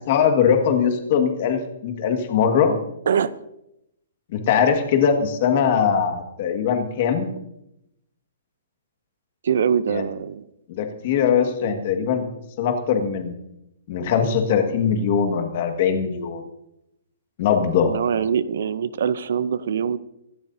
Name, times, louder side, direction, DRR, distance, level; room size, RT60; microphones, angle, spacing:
voice 1, 0.1-2.8 4.3-7.3 9.9-10.0 10.7-12.3 12.6-13.3 13.9-16.4 17.4-17.9, left 7 dB, 35° left, 5 dB, 1.7 m, -21 dB
voice 2, 9.4-10.4 11.6-11.7 17.9-20.0, right 7 dB, 55° right, 17 dB, 0.6 m, -23 dB
25.5 x 12.0 x 2.7 m, 0.84 s
hypercardioid pair, 180°, 0 cm